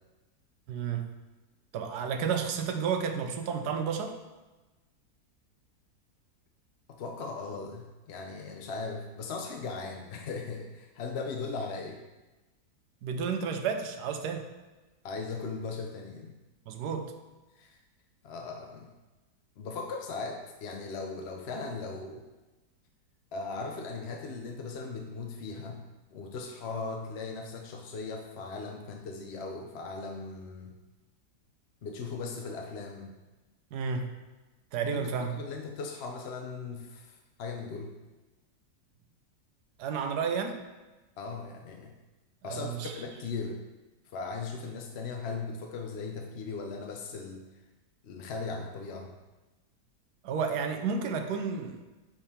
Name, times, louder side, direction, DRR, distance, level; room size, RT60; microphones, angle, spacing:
voice 1, 0.7-1.1 1.7-4.2 13.0-14.5 16.7-17.1 33.7-34.1 34.7-35.4 39.8-40.6 42.4-43.0 50.2-51.8, right 6 dB, 85° right, 6 dB, 1.3 m, -31 dB
voice 2, 6.9-12.0 15.0-16.3 17.6-17.8 18.2-18.9 19.6-22.3 23.3-25.8 26.1-30.7 31.8-33.1 34.9-37.9 41.2-41.9 42.4-43.6 44.0-47.5 48.0-49.1, left 4 dB, 60° left, 2 dB, 0.7 m, -38 dB
10.0 x 3.7 x 4.2 m, 1.1 s
omnidirectional pair, 1.7 m